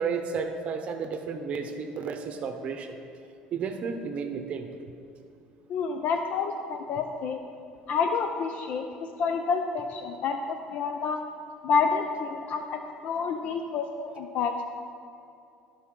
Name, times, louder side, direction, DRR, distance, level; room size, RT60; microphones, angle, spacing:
voice 1, 0.0-2.9 3.5-4.7, right 5 dB, 45° right, 6 dB, 0.8 m, -32 dB
voice 2, 5.7-7.4 7.9-11.2 11.6-14.6, left 5 dB, 55° left, 6 dB, 0.5 m, -29 dB
16.0 x 5.5 x 3.8 m, 2.6 s
cardioid pair, 125°, 3 cm